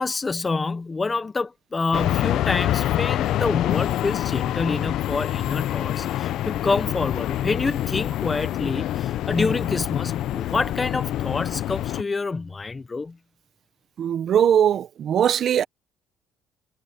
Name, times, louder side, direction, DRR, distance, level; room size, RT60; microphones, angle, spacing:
voice 1, 0.0-13.2, left 3 dB, 20° left, 0.8 m, -27 dB
sound 1, 1.9-12.0, left 13 dB, 65° left, 0.5 m, -26 dB
voice 2, 14.0-15.6, right 9 dB, 50° right, 0.8 m, -20 dB
cardioid pair, 135°, 0 cm